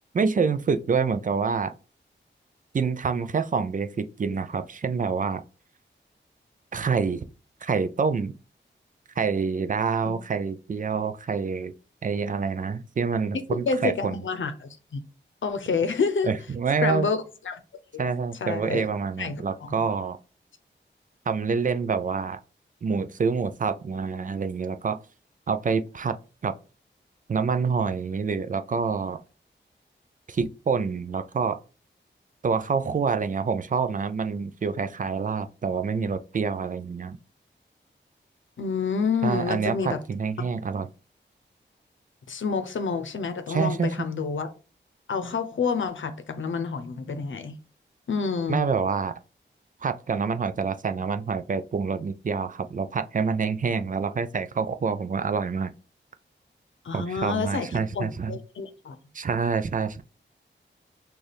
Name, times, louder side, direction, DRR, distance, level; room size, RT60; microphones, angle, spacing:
voice 1, 0.1-1.7 2.7-5.4 6.7-7.3 7.6-8.3 9.2-11.7 12.0-14.2 16.2-17.1 18.0-20.2 21.3-22.4 22.8-25.0 25.5-26.1 26.4-26.5 27.3-29.2 30.3-31.6 32.4-37.2 39.2-40.9 43.5-43.9 48.5-49.1 49.8-55.7 56.9-58.4 59.1-60.0, right 5 dB, 45° right, 0.4 m, -27 dB
voice 2, 13.5-15.0 15.4-16.3 16.8-17.2 17.5-17.6 18.4-18.9 19.2-19.7 38.6-40.0 40.4-40.5 42.3-44.5 45.1-47.6 48.1-48.6 56.8-57.7 57.9-59.0, left 5 dB, 80° left, 0.7 m, -28 dB
6.3 x 2.4 x 3.4 m
wide cardioid pair, 90°, 20 cm